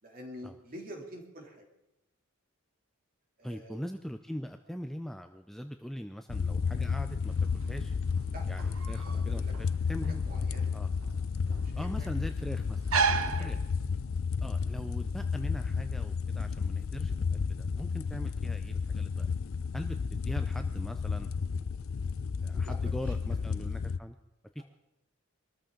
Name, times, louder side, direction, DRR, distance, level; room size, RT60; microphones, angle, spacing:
voice 1, 0.0-1.6 3.4-3.8 8.3-8.5 9.0-9.5 10.2-10.7 11.5-12.1 12.9-13.5 14.1-14.2 22.5-23.1 24.5-24.6, equal, 40° right, 1 dB, 2.9 m, -47 dB
voice 2, 3.4-7.9 8.5-10.2 10.7-10.9 11.8-12.8 13.4-13.6 14.4-19.3 19.7-21.7 22.4-24.2 24.5-24.6, equal, ahead, 6 dB, 0.4 m, -41 dB
Content warning, 6.3-24.0, left 5 dB, 65° left, 0.4 m, -32 dB
sound 1, 7.3-14.3, right 5 dB, 70° right, 0.8 m, -35 dB
23.5 x 14.0 x 3.8 m, 0.93 s
head